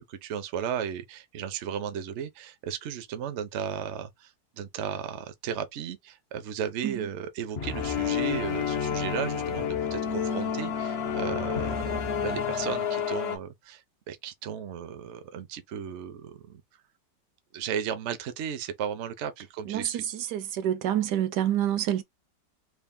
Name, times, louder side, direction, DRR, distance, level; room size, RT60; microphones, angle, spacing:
voice 1, 0.0-16.6 17.5-20.1, right 8 dB, 60° right, 0.8 m, -35 dB
sound 1, 7.6-13.4, left 7 dB, 50° left, 0.7 m, -29 dB
voice 2, 19.7-22.0, right 11 dB, 75° right, 1.2 m, -27 dB
3.4 x 2.4 x 3.6 m
omnidirectional pair, 1.9 m